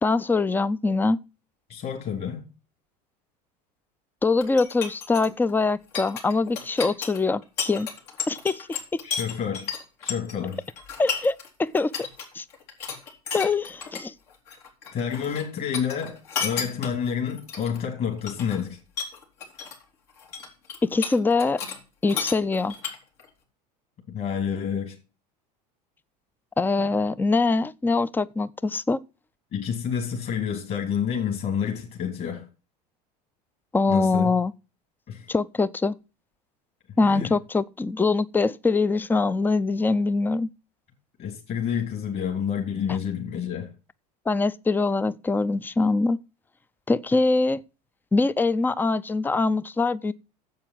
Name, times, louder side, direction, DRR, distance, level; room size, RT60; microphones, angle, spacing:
voice 1, 0.0-1.2 4.2-7.9 8.3-8.7 11.0-11.9 12.3-12.4 13.3-14.1 20.8-21.6 22.0-22.7 26.6-29.0 33.7-34.5 35.3-35.9 37.0-40.5 42.9-43.0 44.3-46.2 46.9-47.6 48.1-50.1, left 3 dB, 10° left, 0.5 m, -23 dB
voice 2, 1.7-2.5 9.0-9.7 10.0-10.6 14.9-18.8 24.1-25.0 29.5-32.5 33.9-34.4 35.1-35.3 37.0-37.3 41.2-43.7, left 7 dB, 45° left, 3.6 m, -29 dB
sound 1, 4.4-11.5 11.8-12.2 12.5-14.0 14.3-15.4 15.7-17.8 18.2-18.6 19.0-19.8 20.1-21.8 22.1-23.3, left 6 dB, 75° left, 3.8 m, -33 dB
9.5 x 7.8 x 5.9 m
hypercardioid pair, 85°, 21 cm